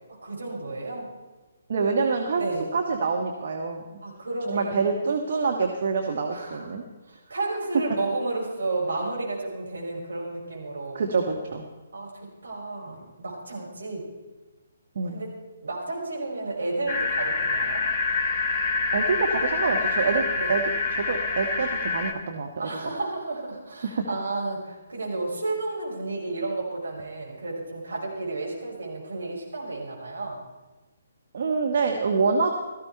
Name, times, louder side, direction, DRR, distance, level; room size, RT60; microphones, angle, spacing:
voice 1, 0.2-1.1 2.3-2.6 4.0-4.8 6.3-6.8 7.1-11.0 11.9-12.1 12.4-14.1 15.1-15.3 15.6-17.8 20.4-20.5 22.6-30.4, right 2 dB, 65° right, -2 dB, 5.5 m, -32 dB
voice 2, 1.7-2.5 2.7-3.8 4.5-6.8 10.9-11.6 14.9-15.2 18.9-20.6 20.9-22.5 23.8-24.0 31.3-32.5, right 4 dB, 50° right, 1 dB, 1.4 m, -26 dB
sound 1, 16.9-22.1, left 3 dB, 25° left, 1.1 m, -26 dB
17.0 x 14.0 x 4.5 m, 1.2 s
figure-of-eight pair, 135°, 0 cm